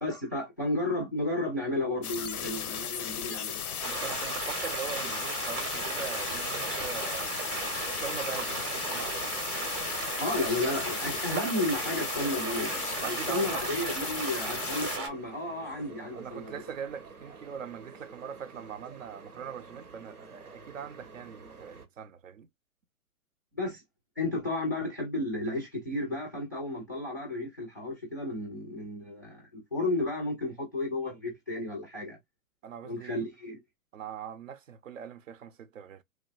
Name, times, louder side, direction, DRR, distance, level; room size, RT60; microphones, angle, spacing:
voice 1, 0.0-4.0 10.2-12.8 13.1-16.6 23.6-23.8 24.2-32.2 32.8-33.6, left 2 dB, 15° left, 0.3 m, -33 dB
sound 1, 2.0-15.0, left 8 dB, 90° left, 0.5 m, -36 dB
sound 2, 3.8-15.1, right 4 dB, 20° right, 0.6 m, -36 dB
voice 2, 3.8-7.3 8.0-9.3 13.0-13.6 16.1-22.5 32.6-33.3 33.9-36.0, right 7 dB, 65° right, 0.6 m, -41 dB
sound 3, 4.6-21.9, right 4 dB, 90° right, 0.9 m, -49 dB
3.1 x 2.3 x 2.2 m
figure-of-eight pair, 125°, 43 cm